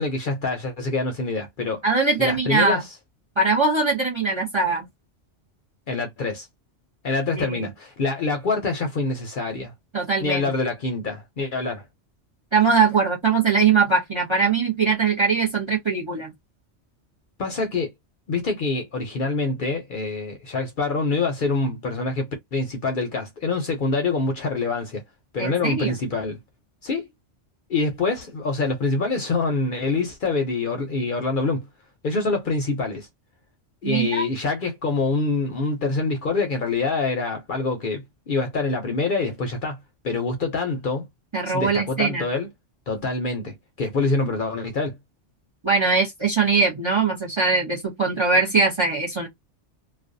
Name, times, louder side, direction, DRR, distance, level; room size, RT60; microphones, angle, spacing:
voice 1, 0.0-1.8 2.2-2.9 5.9-6.5 7.0-9.7 10.2-11.8 17.4-17.9 18.3-25.0 25.3-26.4 26.8-27.1 27.7-31.7 32.0-33.1 33.8-39.8 40.0-41.1 41.4-42.5 42.9-45.0, left 3 dB, 55° left, 0.6 m, -25 dB
voice 2, 1.8-2.8 3.4-4.9 7.4-7.6 9.9-10.5 12.5-16.3 25.4-25.9 33.8-34.2 41.3-42.3 45.6-49.3, right 4 dB, 35° right, 0.5 m, -21 dB
2.4 x 2.2 x 2.5 m
omnidirectional pair, 1.2 m